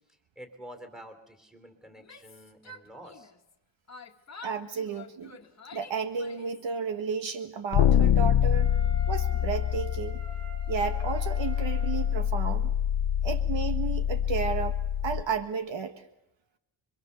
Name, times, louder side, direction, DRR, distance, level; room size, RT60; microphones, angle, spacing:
voice 1, 0.3-3.3, equal, ahead, 6 dB, 3.3 m, -48 dB
Yell, 1.9-3.5 3.9-6.7, left 3 dB, 35° left, 1.6 m, -48 dB
voice 2, 4.4-5.4 5.7-8.7 9.1-10.2 10.7-12.7 13.2-14.8 15.0-15.9, right 6 dB, 65° right, 8 dB, 1.5 m, -32 dB
sound 1, 7.7-15.2, left 9 dB, 70° left, 0.8 m, -26 dB
Wind instrument woodwind instrument, 8.5-12.3, left 1 dB, 35° right, 6.7 m, -45 dB
26.0 x 23.5 x 6.8 m, 0.89 s
wide cardioid pair, 120°, 49 cm